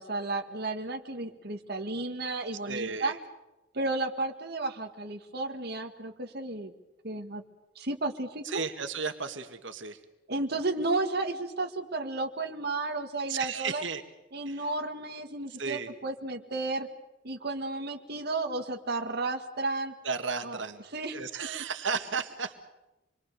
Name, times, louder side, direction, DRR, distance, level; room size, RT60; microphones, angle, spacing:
voice 1, 0.0-3.2 3.7-6.7 7.0-7.4 7.7-8.6 10.3-13.8 14.3-16.9 17.2-19.9 20.4-20.6 20.9-21.2, right 2 dB, 60° right, 4 dB, 1.8 m, -33 dB
voice 2, 2.7-3.2 8.4-10.0 13.3-14.0 14.5-14.7 15.6-15.9 20.0-20.8 21.1-22.6, right 5 dB, 90° right, 7 dB, 1.9 m, -34 dB
27.5 x 22.5 x 6.8 m, 1.0 s
head